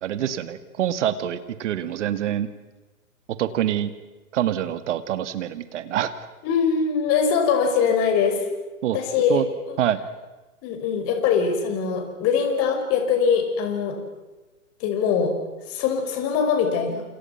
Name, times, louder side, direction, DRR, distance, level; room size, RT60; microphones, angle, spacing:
voice 1, 0.0-2.5 3.4-3.9 4.3-6.1 8.8-9.0 9.3-9.5 9.8-10.0, right 11 dB, 55° right, 13 dB, 2.2 m, -25 dB
voice 2, 6.4-8.4 8.9-9.8 10.6-14.0 14.8-15.3 15.7-17.0, left 6 dB, 35° left, 5 dB, 5.7 m, -22 dB
28.5 x 27.5 x 5.9 m, 1.2 s
hypercardioid pair, 125°, 43 cm